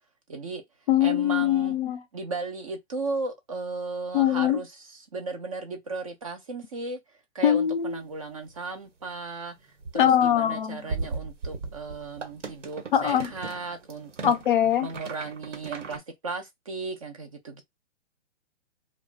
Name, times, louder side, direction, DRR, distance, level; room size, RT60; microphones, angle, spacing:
voice 1, 0.3-0.6 1.0-1.8 2.1-7.0 7.3-9.6 9.9-14.3 14.8-17.6, right 3 dB, 30° right, 0.4 m, -35 dB
voice 2, 0.9-2.0 4.1-4.6 7.4-8.0 9.9-10.8 12.9-13.3 14.2-14.9, left 10 dB, 45° left, 0.6 m, -22 dB
sound 1, 7.5-7.6 8.2-8.3 8.5-8.8 9.0-9.2 9.6-16.0, right 4 dB, 80° right, 1.3 m, -38 dB
2.3 x 2.0 x 3.8 m
hypercardioid pair, 150°, 36 cm